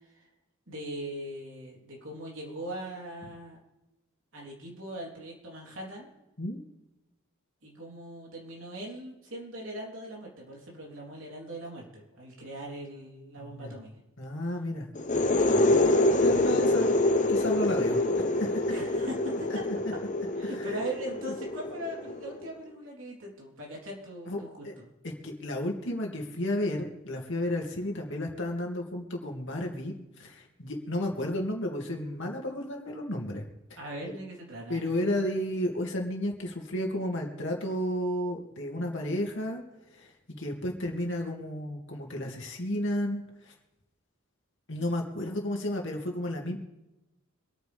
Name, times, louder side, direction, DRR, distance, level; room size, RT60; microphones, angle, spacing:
voice 1, 0.7-3.6 4.3-6.1 7.6-13.9 18.7-19.5 20.4-24.9 33.8-34.8, right 1 dB, 60° right, -2 dB, 3.8 m, -40 dB
voice 2, 13.4-13.8 14.2-14.9 15.4-17.0 17.3-18.6 19.5-19.6 19.9-20.0 20.4-20.6 24.3-24.7 25.2-33.4 33.7-33.8 34.0-34.1 34.7-39.6 39.9-40.1 40.4-43.5 44.7-46.6, left 1 dB, 55° left, 1 dB, 2.6 m, -32 dB
sound 1, 14.9-22.5, left 2 dB, 35° left, 0.9 m, -26 dB
26.0 x 9.4 x 3.6 m, 0.99 s
head